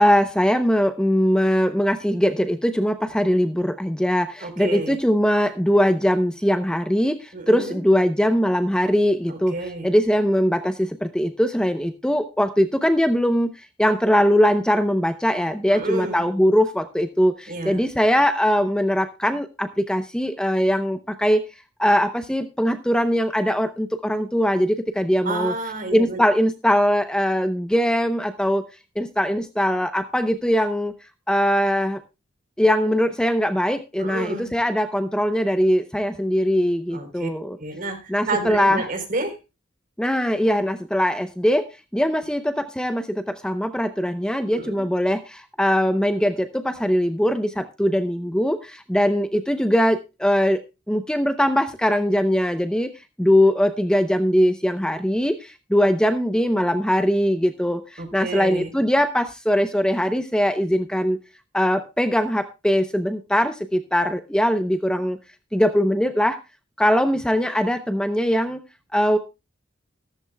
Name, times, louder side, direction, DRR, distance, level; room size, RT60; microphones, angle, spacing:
voice 1, 0.0-9.5 9.8-21.4 21.8-25.5 25.9-28.6 29.0-30.9 31.3-32.0 32.6-37.6 38.1-38.9 40.0-41.7 41.9-52.9 53.2-61.2 61.5-65.2 65.5-66.4 66.8-68.6 68.9-69.2, equal, 5° left, 9 dB, 0.8 m, -21 dB
voice 2, 4.4-5.0 7.3-7.8 9.3-9.9 15.7-16.2 17.5-17.8 25.2-26.2 34.0-34.5 36.9-37.3 37.6-39.4 44.5-44.7 58.0-58.7, right 2 dB, 45° right, 6 dB, 3.9 m, -30 dB
14.5 x 14.0 x 2.3 m, 0.27 s
head